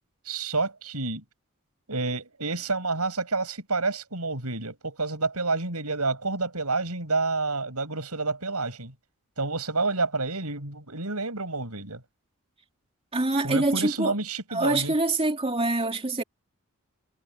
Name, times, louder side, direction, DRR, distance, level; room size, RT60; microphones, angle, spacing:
voice 1, 0.3-1.2 1.9-8.9 9.4-12.0 13.4-14.9, right 3 dB, 85° right, 6.9 m, -29 dB
voice 2, 13.1-14.1 14.5-16.2, right 2 dB, 25° right, 2.4 m, -25 dB
head